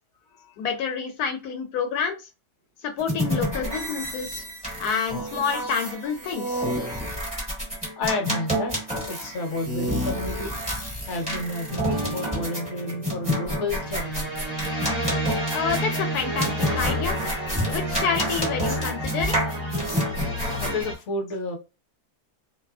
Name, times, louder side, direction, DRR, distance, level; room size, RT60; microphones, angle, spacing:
voice 1, 0.6-2.2 2.8-4.4 4.8-6.7 15.5-17.2 17.7-19.3, left 6 dB, 85° left, 1.2 m, -28 dB
sound 1, 3.0-20.8, equal, 5° right, 1.4 m, -29 dB
voice 2, 8.0-8.7 9.1-10.6 11.1-14.3 20.6-21.6, left 2 dB, 55° left, 1.1 m, -31 dB
sound 2, 11.7-16.4, right 2 dB, 35° right, 0.6 m, -39 dB
sound 3, 13.7-20.9, equal, 20° left, 1.0 m, -30 dB
2.8 x 2.4 x 2.3 m
omnidirectional pair, 1.6 m